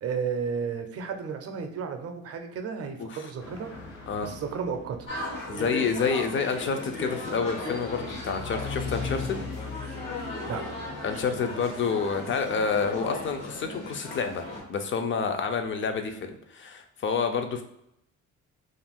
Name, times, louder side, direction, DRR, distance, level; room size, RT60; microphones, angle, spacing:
voice 1, 0.0-3.7 4.2-5.0 10.5-10.7 11.1-11.4, right 6 dB, 50° right, 6 dB, 0.5 m, -33 dB
voice 2, 3.0-3.3 4.1-4.3 5.5-9.4 11.0-14.4 14.7-17.6, left 5 dB, 40° left, 6 dB, 0.4 m, -29 dB
sound 1, 3.4-14.4, left 5 dB, 60° left, 1.0 m, -41 dB
sound 2, 5.1-14.6, left 2 dB, 80° left, 1.2 m, -37 dB
2.5 x 2.2 x 3.4 m, 0.79 s
cardioid pair, 110°, 31 cm